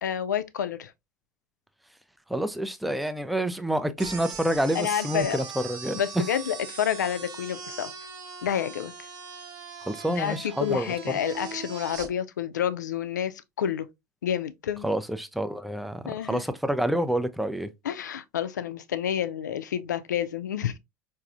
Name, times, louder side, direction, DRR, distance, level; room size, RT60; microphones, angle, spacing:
voice 1, 0.0-0.9 4.7-5.4 5.9-7.9 8.4-8.9 10.1-13.9 14.2-14.9 16.1-16.4 17.8-20.7, left 9 dB, 80° left, 0.4 m, -29 dB
voice 2, 2.3-6.0 9.9-10.9 14.8-17.7, right 1 dB, ahead, 0.4 m, -28 dB
sound 1, 4.0-12.1, right 5 dB, 45° right, 0.8 m, -40 dB
4.7 x 2.5 x 2.4 m
figure-of-eight pair, 75°, 10 cm